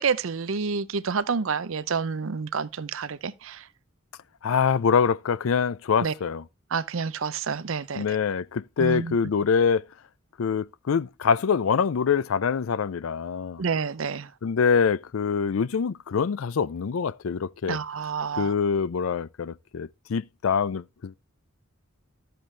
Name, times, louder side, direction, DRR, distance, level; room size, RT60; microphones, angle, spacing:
voice 1, 0.0-3.6 6.0-6.1 6.7-8.0 8.8-9.1 13.6-14.3 17.7-18.5, right 5 dB, 70° right, 0.6 m, -28 dB
voice 2, 4.4-6.5 7.9-9.8 10.4-13.6 14.4-17.8 18.3-21.2, left 6 dB, 75° left, 0.4 m, -25 dB
12.5 x 7.7 x 3.3 m
head